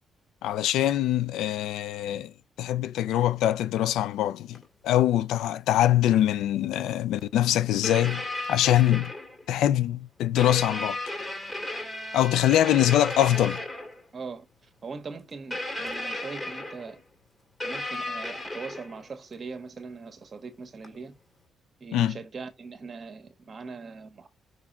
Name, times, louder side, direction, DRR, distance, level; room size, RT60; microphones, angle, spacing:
voice 1, 0.4-2.3 2.6-9.1 9.5-11.0 12.1-13.6 21.9-22.2, left 12 dB, 85° left, 0.5 m, -23 dB
sound 1, 4.5-4.6 5.4-5.6 7.2-7.3 7.8-9.5 10.4-14.0 15.5-17.0 17.6-19.1 20.8-21.0, left 1 dB, 20° left, 2.5 m, -34 dB
voice 2, 14.1-17.0 17.6-21.1 21.8-24.3, right 4 dB, 40° right, 1.5 m, -41 dB
6.1 x 3.5 x 4.4 m
cardioid pair, 90°, 0 cm